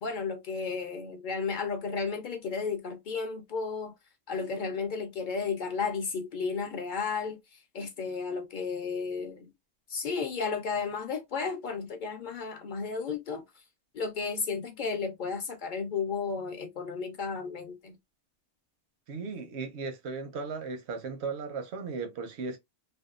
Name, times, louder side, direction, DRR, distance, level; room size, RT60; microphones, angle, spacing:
voice 1, 0.0-3.9 4.3-7.4 7.7-9.5 9.9-13.4 13.9-18.0, left 5 dB, 60° left, 0.6 m, -33 dB
voice 2, 19.1-22.6, right 4 dB, 85° right, 0.9 m, -36 dB
2.6 x 2.2 x 2.3 m
omnidirectional pair, 1.1 m